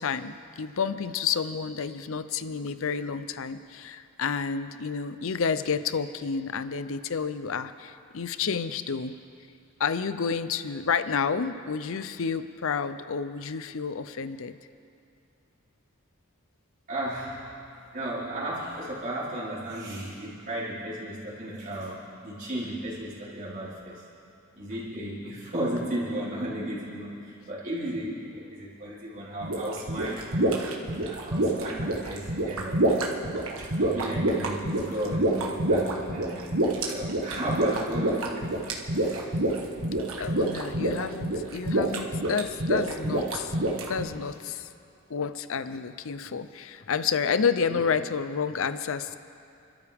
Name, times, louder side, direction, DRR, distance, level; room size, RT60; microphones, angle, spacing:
voice 1, 0.0-9.1 9.8-14.6 40.2-43.6 43.9-44.7 45.1-49.2, left 6 dB, 65° left, 12 dB, 0.6 m, -30 dB
voice 2, 16.9-17.5 17.9-24.1 24.5-30.5 31.0-32.9 33.6-38.6 38.9-39.2 47.7-47.9, right 1 dB, 40° right, -9 dB, 4.5 m, -34 dB
sound 1, 29.4-44.1, right 1 dB, 70° right, 1.7 m, -27 dB
30.0 x 13.0 x 3.6 m, 2.6 s
head